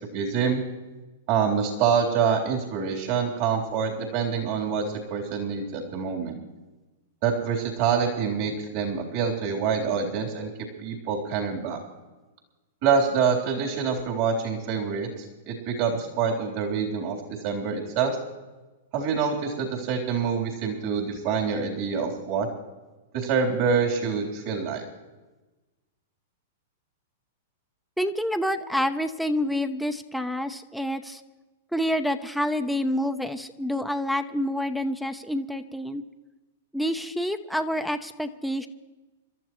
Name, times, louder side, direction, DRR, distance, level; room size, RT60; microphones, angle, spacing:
voice 1, 0.1-0.6 1.3-6.4 7.2-10.5 10.8-11.8 12.8-18.2 18.9-22.5 23.1-24.8, right 6 dB, 50° right, -1 dB, 3.7 m, -26 dB
voice 2, 28.0-31.2 31.7-36.0 36.7-38.7, equal, ahead, 5 dB, 0.7 m, -28 dB
29.0 x 12.5 x 3.2 m, 1.2 s
hypercardioid pair, 115°, 0 cm